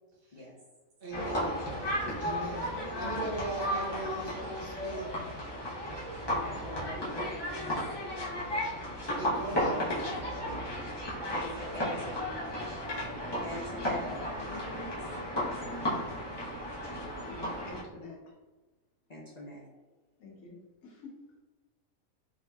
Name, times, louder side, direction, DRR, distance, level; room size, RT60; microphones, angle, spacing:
voice 1, 1.0-1.6 2.2-5.4 6.6-6.7 9.2-10.0, right 2 dB, 50° right, -3 dB, 0.7 m, -40 dB
sound 1, 1.1-17.8, equal, 25° left, 0.6 m, -34 dB
voice 2, 6.3-7.7 11.4-12.4 13.4-15.0 19.1-19.6, left 1 dB, 70° left, -5 dB, 0.4 m, -43 dB
voice 3, 17.2-18.3 20.2-21.2, left 3 dB, 85° left, -2 dB, 1.3 m, -48 dB
3.6 x 2.7 x 2.2 m, 1.2 s
omnidirectional pair, 1.5 m